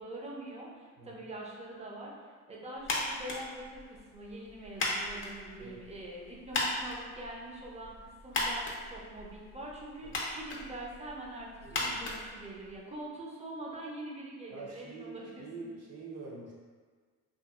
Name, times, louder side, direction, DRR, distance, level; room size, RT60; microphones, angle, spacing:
voice 1, 0.0-2.1 2.5-15.7, right 1 dB, 20° right, -3 dB, 0.6 m, -44 dB
sound 1, 2.8-13.0, left 2 dB, 40° left, 0.6 m, -38 dB
voice 2, 11.6-12.0 14.5-16.5, right 3 dB, 55° right, -4 dB, 0.8 m, -46 dB
2.7 x 2.5 x 2.4 m, 1.5 s
cardioid pair, 90°, 30 cm